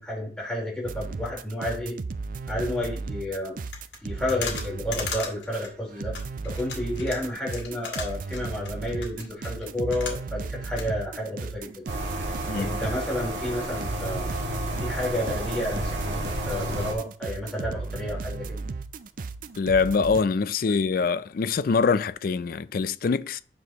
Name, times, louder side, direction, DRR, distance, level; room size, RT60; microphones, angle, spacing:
voice 1, 0.0-2.0 2.5-3.6 4.0-6.1 6.4-12.0 12.5-14.3 14.8-18.6, left 1 dB, 5° left, 4.0 m, -31 dB
sound 1, 0.8-13.1 13.3-20.2, right 4 dB, 50° right, 0.4 m, -35 dB
sound 2, 3.7-10.5 10.8-10.9, left 5 dB, 80° left, 2.2 m, -37 dB
sound 3, 11.9-16.9, right 1 dB, 85° right, 2.1 m, -31 dB
voice 2, 19.6-23.4, left 5 dB, 55° left, 0.4 m, -24 dB
9.7 x 6.2 x 3.0 m
head